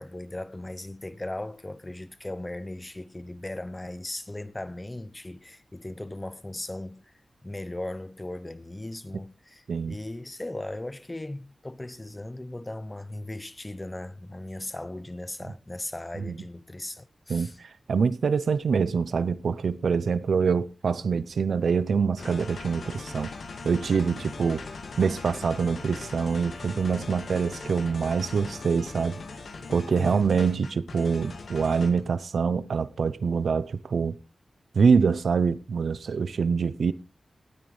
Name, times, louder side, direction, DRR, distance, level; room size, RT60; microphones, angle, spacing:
voice 1, 0.0-7.0 7.4-17.6 30.0-30.3, left 1 dB, 15° left, 0.7 m, -37 dB
voice 2, 17.3-23.3 23.6-24.6 25.0-29.2 29.7-34.2 34.7-36.9, right 5 dB, 80° right, 0.6 m, -25 dB
sound 1, 22.2-32.0, left 4 dB, 75° left, 2.1 m, -40 dB
18.0 x 9.4 x 3.3 m
wide cardioid pair, 135°, 0 cm